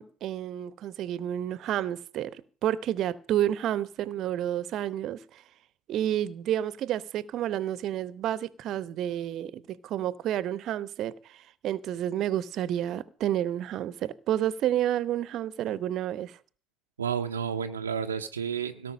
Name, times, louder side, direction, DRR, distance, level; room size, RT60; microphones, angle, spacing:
voice 1, 0.0-5.4 5.9-16.4, right 11 dB, 55° right, 19 dB, 0.9 m, -30 dB
voice 2, 17.0-18.9, right 7 dB, 85° right, 7 dB, 0.7 m, -31 dB
17.5 x 6.1 x 8.6 m, 0.39 s
figure-of-eight pair, 55°, 0 cm